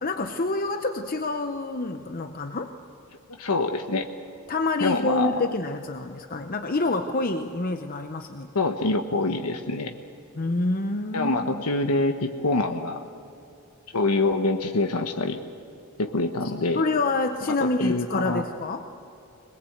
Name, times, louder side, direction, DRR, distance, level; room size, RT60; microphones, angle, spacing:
voice 1, 0.0-2.7 4.5-8.5 10.4-11.3 16.7-18.9, left 2 dB, 40° left, 7 dB, 0.8 m, -27 dB
voice 2, 3.3-4.1 4.8-5.5 8.5-9.9 11.1-13.0 13.9-15.4 16.0-16.8 17.6-18.4, left 2 dB, 90° left, 5 dB, 1.1 m, -25 dB
22.0 x 21.0 x 8.0 m, 2.8 s
head